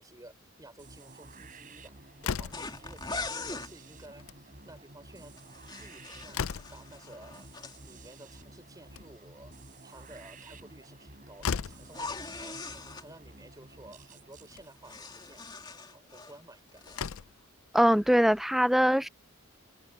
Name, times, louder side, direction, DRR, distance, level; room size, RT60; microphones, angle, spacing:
voice 1, 0.0-5.3 5.8-12.7 13.0-15.6 15.9-16.9, right 1 dB, 15° right, 4.4 m, -53 dB
sound 1, 0.8-16.6, right 2 dB, 40° right, 3.8 m, -52 dB
Slam, 2.2-2.8 4.1-4.4 4.8-4.9 5.1-5.2 5.8-6.9 8.7-9.4 11.0-11.1 11.4-11.9 13.0-13.1 13.5-13.6 14.4-14.7 16.4-16.5 16.9-17.5, left 6 dB, 75° left, 0.5 m, -36 dB
sound 2, 2.5-3.7 5.4-7.8 11.9-13.1 14.5-16.4 16.7-17.1, left 3 dB, 20° left, 2.9 m, -41 dB
voice 2, 17.7-19.1, equal, ahead, 0.3 m, -22 dB
open air
head